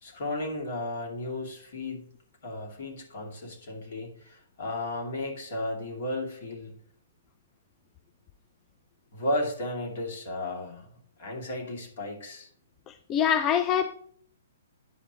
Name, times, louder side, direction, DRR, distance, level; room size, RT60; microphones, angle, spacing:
voice 1, 0.0-2.1 2.4-6.7 9.1-10.9 11.2-12.5, left 1 dB, 60° left, 2.6 m, -34 dB
voice 2, 12.9-13.9, left 8 dB, 25° left, 0.4 m, -25 dB
10.0 x 5.3 x 3.1 m
hypercardioid pair, 135°, 0 cm